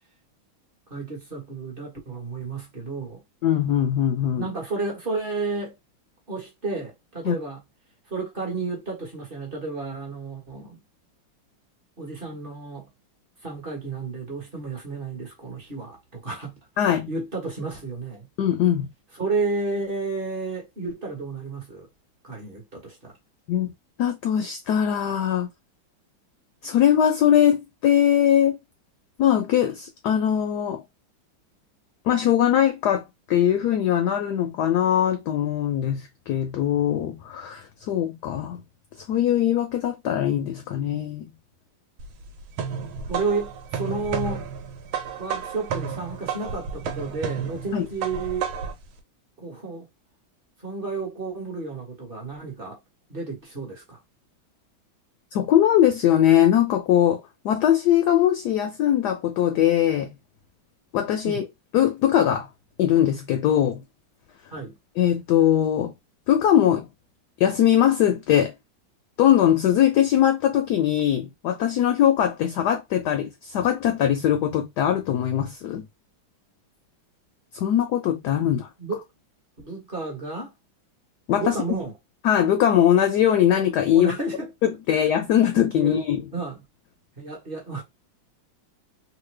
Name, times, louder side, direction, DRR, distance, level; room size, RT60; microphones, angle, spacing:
voice 1, 0.9-3.2 4.4-5.8 6.3-7.6 8.1-10.8 12.0-12.9 13.4-16.6 17.1-18.3 19.2-21.9 22.2-23.1 43.1-44.5 45.2-48.5 49.4-49.9 50.6-52.8 53.1-54.0 61.2-61.4 64.5-64.8 78.8-79.0 79.6-80.5 81.4-81.9 83.9-84.5 84.9-85.0 85.7-86.0 86.3-86.6 87.2-87.8, right 3 dB, 35° right, 1.0 m, -31 dB
voice 2, 3.4-4.5 7.2-7.3 16.8-17.1 18.4-18.9 23.5-23.7 24.0-25.5 26.6-28.6 29.2-30.8 32.1-38.6 39.1-41.3 47.7-47.9 55.3-60.1 60.9-61.5 61.7-62.5 62.8-63.8 65.0-65.9 66.3-66.9 67.4-68.5 69.2-75.9 77.5-78.7 81.3-81.5 82.2-84.1 84.6-86.2, left 10 dB, 70° left, 1.0 m, -21 dB
sound 1, 42.0-48.8, right 7 dB, 90° right, 1.4 m, -32 dB
3.2 x 2.2 x 3.2 m
omnidirectional pair, 2.1 m